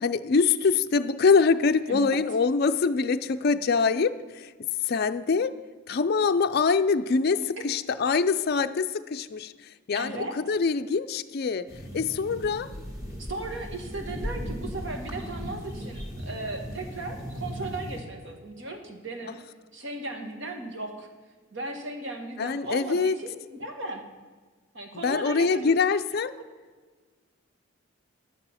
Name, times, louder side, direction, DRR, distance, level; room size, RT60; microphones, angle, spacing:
voice 1, 0.0-4.5 4.9-5.5 5.9-9.5 9.9-11.7 11.9-12.7 22.4-23.2 25.0-26.3, left 5 dB, 50° left, 9 dB, 0.4 m, -24 dB
voice 2, 9.9-10.4 13.2-19.4 19.7-21.1 21.5-24.0 24.7-26.0, right 2 dB, 55° right, 4 dB, 1.5 m, -36 dB
sound 1, 11.7-18.0, equal, 15° right, 1.6 m, -37 dB
11.0 x 9.1 x 5.7 m, 1.4 s
head